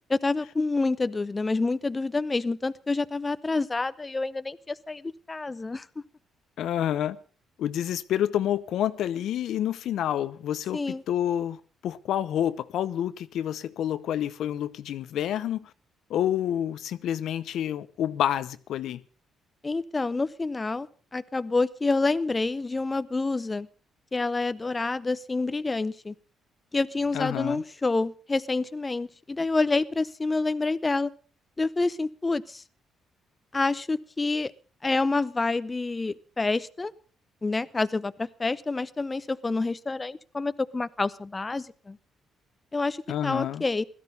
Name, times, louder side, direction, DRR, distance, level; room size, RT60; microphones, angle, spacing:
voice 1, 0.1-5.9 10.7-11.0 19.6-20.9 21.1-23.7 24.1-26.1 26.7-31.1 31.6-32.6 33.5-34.5 34.8-36.9 37.4-42.0 42.7-43.8, left 3 dB, 25° left, 0.7 m, -28 dB
voice 2, 6.6-7.2 7.6-11.6 11.8-15.7 16.1-19.0 27.1-27.6 43.1-43.6, left 11 dB, 75° left, 0.8 m, -28 dB
16.5 x 13.0 x 5.3 m
cardioid pair, 90°, 0 cm